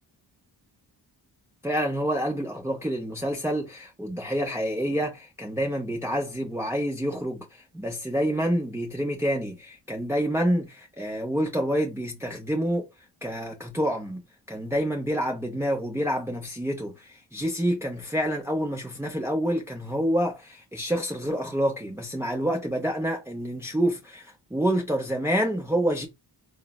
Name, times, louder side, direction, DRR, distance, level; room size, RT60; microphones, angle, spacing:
voice 1, 1.6-12.9 13.2-14.2 14.5-26.1, equal, 5° right, 0.6 m, -28 dB
3.8 x 2.1 x 2.2 m
cardioid pair, 90°, 44 cm